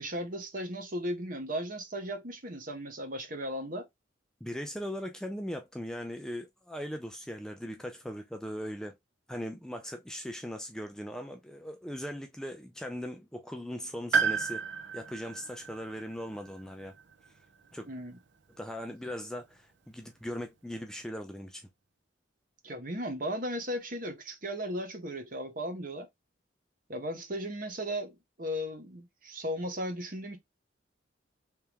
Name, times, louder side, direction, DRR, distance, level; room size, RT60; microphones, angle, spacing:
voice 1, 0.0-3.9 17.8-18.2 22.6-26.1 26.9-30.4, equal, 45° right, 1.0 m, -36 dB
voice 2, 4.4-9.0 9.3-14.7 14.9-16.9 17.7-17.8 18.6-21.7, equal, 5° left, 0.4 m, -39 dB
Piano, 14.1-18.0 18.3-18.4 19.5-19.6, right 6 dB, 70° right, 0.6 m, -33 dB
3.5 x 3.0 x 3.3 m
head